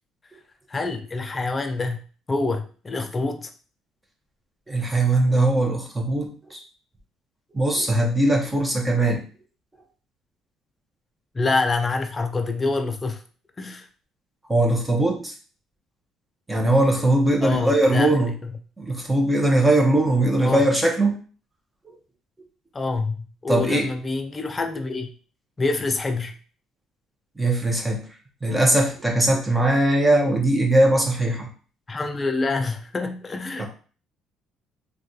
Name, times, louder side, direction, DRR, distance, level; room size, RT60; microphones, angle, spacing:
voice 1, 0.7-2.0 2.3-3.5 11.3-13.2 13.6-13.9 17.4-18.1 18.4-18.6 20.4-20.6 22.7-25.1 25.6-26.3 31.9-33.7, left 3 dB, 25° left, 6 dB, 0.4 m, -26 dB
voice 2, 4.7-6.6 7.5-9.2 14.5-15.3 16.5-18.3 18.8-21.2 23.5-23.9 27.4-28.0 28.4-31.5 33.6-33.7, right 1 dB, 15° right, 1 dB, 0.7 m, -20 dB
3.2 x 2.3 x 2.7 m, 0.39 s
cardioid pair, 120°, 0 cm